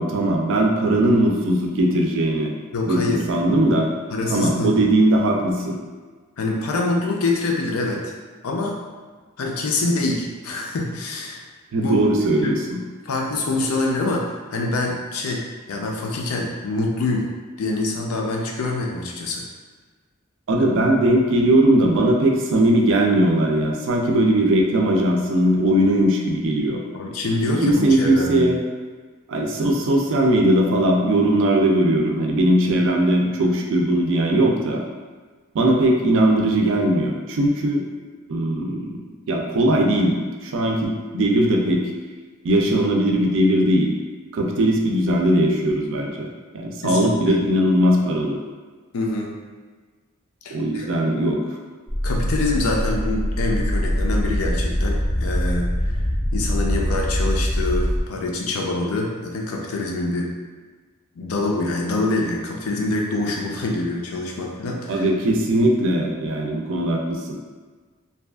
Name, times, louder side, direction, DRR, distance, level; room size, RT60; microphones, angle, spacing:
voice 1, 0.0-2.5 2.9-3.9 4.3-5.8 11.7-12.8 20.5-26.8 27.4-28.6 29.3-34.8 35.5-37.8 38.3-39.0 39.3-41.8 42.4-43.9 44.3-48.4 50.5-51.4 64.9-67.2, right 1 dB, 60° right, 1 dB, 0.4 m, -19 dB
voice 2, 2.7-3.2 4.1-4.7 6.4-8.1 8.4-8.8 9.4-11.4 11.8-12.0 12.4-12.6 13.0-17.3 17.6-19.4 26.9-28.5 46.8-47.4 48.9-49.3 50.4-50.9 52.0-55.7 56.3-60.3 61.2-65.1, left 2 dB, 80° left, 0 dB, 0.5 m, -25 dB
sound 1, 51.9-58.0, equal, 15° left, 0.4 m, -23 dB
2.7 x 2.3 x 2.3 m, 1.4 s
head